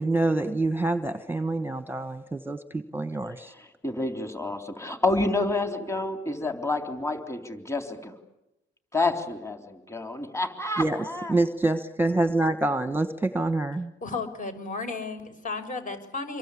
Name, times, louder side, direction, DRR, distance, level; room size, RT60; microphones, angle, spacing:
voice 1, 0.0-3.5 10.8-11.0 11.3-13.9, right 2 dB, 10° right, 10 dB, 1.2 m, -26 dB
voice 2, 3.5-8.1 8.9-11.3, left 2 dB, 15° left, 6 dB, 3.6 m, -29 dB
voice 3, 14.0-16.4, left 3 dB, 40° left, 8 dB, 6.0 m, -33 dB
27.5 x 23.0 x 8.5 m, 0.91 s
cardioid pair, 90°, 20 cm